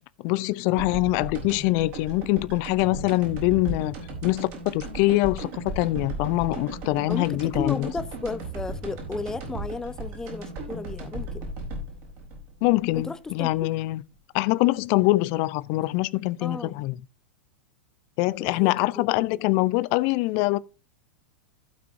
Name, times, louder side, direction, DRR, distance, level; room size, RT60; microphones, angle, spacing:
voice 1, 0.2-3.9 4.2-7.9 12.6-14.0 14.3-17.0 18.2-20.6, left 20 dB, 45° left, 0.6 m, -24 dB
sound 1, 0.8-13.6, right 2 dB, 45° right, 4.4 m, -36 dB
voice 2, 7.1-11.5 12.9-13.7 16.4-16.8 18.4-19.4, left 3 dB, 10° left, 0.7 m, -34 dB
16.0 x 6.0 x 2.7 m
figure-of-eight pair, 95°, 6 cm